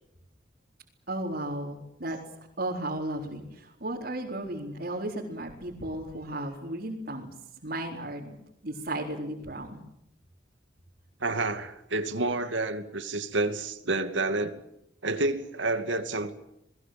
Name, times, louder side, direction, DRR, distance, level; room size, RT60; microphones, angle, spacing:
voice 1, 1.1-2.2 2.6-7.3 7.6-8.4 8.6-9.8, right 1 dB, 55° right, 4.1 m, -34 dB
voice 2, 11.2-14.6 15.0-16.3, right 2 dB, 85° right, 2.5 m, -29 dB
29.5 x 21.0 x 7.8 m
head